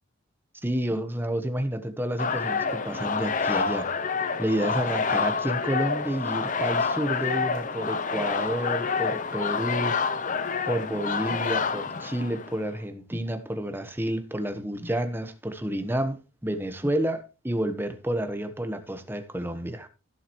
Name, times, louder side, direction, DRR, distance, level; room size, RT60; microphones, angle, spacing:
voice 1, 0.6-4.1 4.4-10.0 10.7-19.9, right 1 dB, 10° right, 1.1 m, -30 dB
sound 1, 2.2-12.7, left 5 dB, 40° left, 0.8 m, -28 dB
16.5 x 7.6 x 3.1 m
head